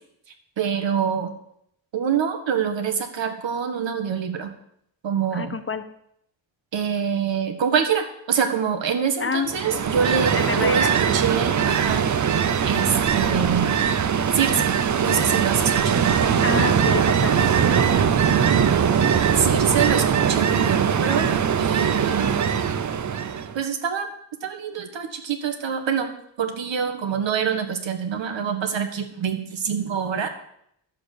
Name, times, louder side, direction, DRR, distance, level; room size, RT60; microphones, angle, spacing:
voice 1, 0.6-1.3 1.9-4.5 5.0-5.6 6.7-12.0 12.6-13.8 14.3-16.0 18.3-18.7 19.3-21.3 21.6-22.4 23.6-24.1 24.4-30.3, right 7 dB, 75° right, 6 dB, 1.6 m, -25 dB
voice 2, 5.3-5.8 9.2-9.8 10.4-10.9 16.4-17.8 18.3-18.4, left 5 dB, 30° left, 9 dB, 0.6 m, -28 dB
Ocean, 9.5-23.6, right 7 dB, 40° right, 0.6 m, -21 dB
11.5 x 7.4 x 6.6 m, 0.73 s
wide cardioid pair, 175°, 44 cm